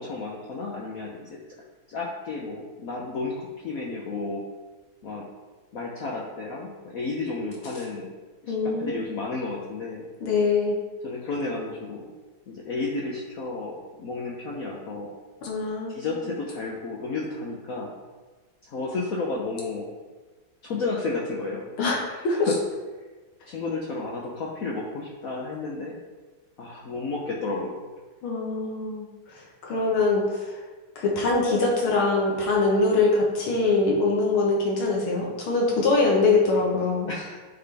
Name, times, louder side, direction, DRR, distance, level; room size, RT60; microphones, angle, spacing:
voice 1, 0.0-1.4 1.9-4.4 5.0-5.3 5.7-8.1 8.4-8.5 8.8-10.1 11.0-12.1 12.5-15.1 15.9-18.0 18.6-19.9 20.6-21.7 22.1-22.6 23.5-26.0 26.6-27.8 29.9-30.0 37.1-37.4, left 3 dB, 60° left, -3 dB, 0.9 m, -32 dB
voice 2, 8.5-9.0 10.2-10.8 15.4-15.9 21.8-22.0 22.2-22.5 28.2-29.1 29.6-30.5 31.0-37.1, left 3 dB, 85° left, -2 dB, 2.1 m, -23 dB
9.1 x 3.9 x 3.4 m, 1.3 s
omnidirectional pair, 2.2 m